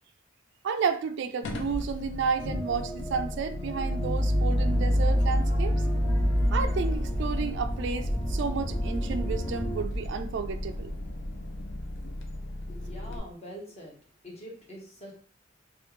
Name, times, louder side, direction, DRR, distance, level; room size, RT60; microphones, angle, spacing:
voice 1, 0.6-5.7 6.5-10.9, right 5 dB, 65° right, 0.3 m, -32 dB
sound 1, 1.4-13.2, equal, 70° left, 0.6 m, -29 dB
sound 2, 2.4-9.9, equal, 20° left, 0.3 m, -39 dB
voice 2, 12.5-14.0 14.2-15.2, equal, 35° left, 1.0 m, -44 dB
3.1 x 2.3 x 3.2 m
head